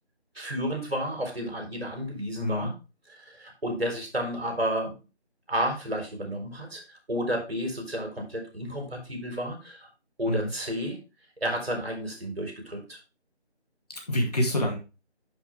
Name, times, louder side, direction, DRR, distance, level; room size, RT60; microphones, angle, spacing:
voice 1, 0.3-2.7 3.1-4.9 5.5-9.9 10.2-11.0 11.4-13.0, equal, 60° right, 3 dB, 4.3 m, -31 dB
voice 2, 2.4-2.7 10.3-10.5 13.9-14.8, left 1 dB, 35° left, 1 dB, 2.2 m, -27 dB
11.0 x 5.5 x 3.4 m, 0.29 s
figure-of-eight pair, 165°, 33 cm